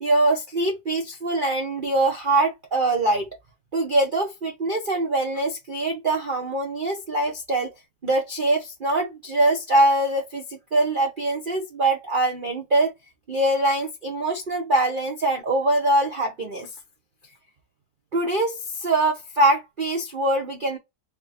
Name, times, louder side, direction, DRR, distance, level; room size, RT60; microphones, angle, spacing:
voice 1, 0.0-3.3 3.7-7.7 8.0-12.9 13.3-16.7 18.1-20.8, right 2 dB, 90° right, 0.4 m, -23 dB
3.5 x 2.1 x 4.1 m
omnidirectional pair, 2.0 m